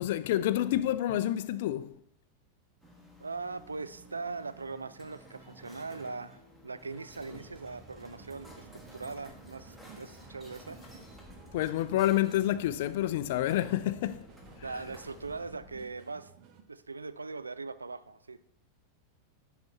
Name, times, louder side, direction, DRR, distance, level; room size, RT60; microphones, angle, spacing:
voice 1, 0.0-2.0 11.5-14.2, left 13 dB, 55° left, 0.4 m, -28 dB
sound 1, 2.8-15.4, right 1 dB, 5° right, 1.4 m, -54 dB
voice 2, 3.2-10.8 14.6-16.3 16.7-18.4, right 4 dB, 80° right, 0.3 m, -40 dB
sound 2, 6.8-16.6, right 6 dB, 40° right, 0.8 m, -55 dB
sound 3, 7.1-15.8, left 4 dB, 20° left, 0.9 m, -56 dB
10.5 x 4.1 x 4.5 m
figure-of-eight pair, 90°, 0 cm